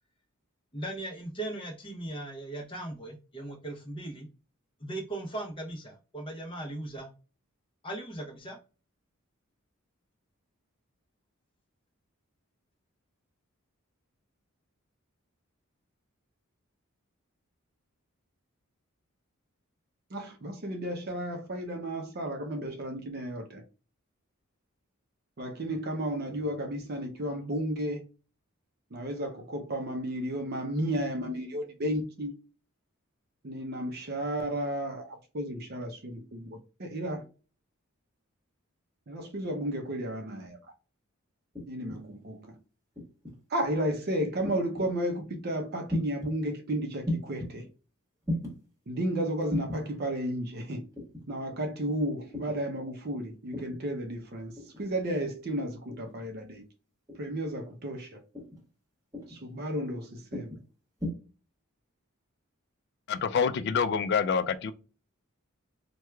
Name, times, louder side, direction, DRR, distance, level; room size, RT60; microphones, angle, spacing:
voice 1, 0.7-4.3 4.8-7.1 7.8-8.6, right 2 dB, 25° left, 0.7 m, -38 dB
voice 2, 20.1-23.6 25.4-28.0 28.9-32.3 33.4-37.2 39.1-40.6 41.7-42.6 43.5-47.6 48.9-50.8 51.3-56.6 57.1-58.2 59.3-60.6, right 1 dB, 45° right, 0.6 m, -33 dB
sound 1, 41.6-42.0 43.0-43.4 44.4-44.9 45.9-46.3 47.1-47.5 48.2-48.6 49.5-49.8 51.0-51.3 52.3-52.6 53.5-53.8 54.6-54.9 55.9-56.2 57.1-57.4 58.3-58.6 59.1-59.4 60.3-60.6 61.0-61.1, left 1 dB, 15° right, 1.2 m, -35 dB
voice 3, 63.1-64.7, left 6 dB, 50° left, 0.3 m, -27 dB
4.5 x 2.2 x 2.2 m
head